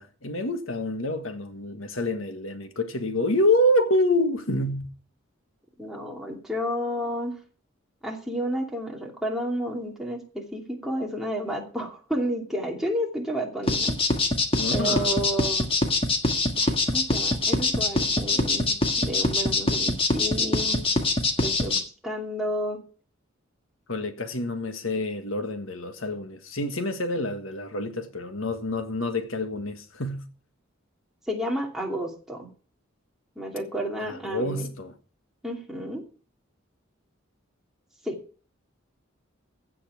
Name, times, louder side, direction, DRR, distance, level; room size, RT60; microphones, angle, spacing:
voice 1, 0.0-4.9 14.6-15.3 23.9-30.2 34.0-34.9, left 1 dB, 85° left, 1.6 m, -27 dB
voice 2, 5.8-7.3 8.0-13.9 14.7-15.7 16.5-20.8 21.4-22.8 31.3-32.5 33.4-34.7 35.4-36.0 38.0-38.2, equal, ahead, 2.6 m, -31 dB
sound 1, 13.7-21.8, left 2 dB, 30° left, 1.7 m, -23 dB
15.5 x 5.7 x 7.0 m
head